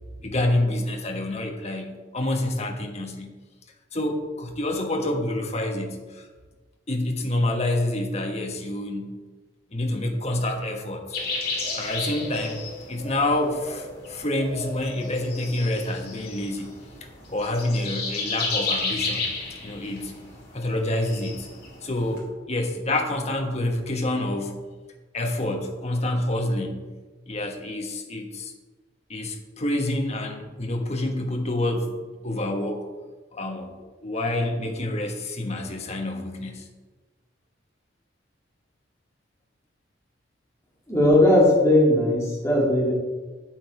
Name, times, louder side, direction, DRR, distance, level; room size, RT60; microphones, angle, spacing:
voice 1, 0.2-3.3 3.9-6.3 6.9-9.1 9.7-11.2 11.7-16.7 17.3-19.3 19.6-20.1 20.5-21.5 21.8-24.5 25.1-26.8 27.3-28.5 29.1-32.8 33.3-33.7 34.0-36.7, left 1 dB, 35° left, 3 dB, 1.2 m, -27 dB
sound 1, 11.1-22.2, left 3 dB, 50° left, 2.6 m, -33 dB
voice 2, 40.9-42.9, left 1 dB, 15° left, -5 dB, 2.9 m, -18 dB
8.6 x 7.5 x 4.8 m, 1.3 s
head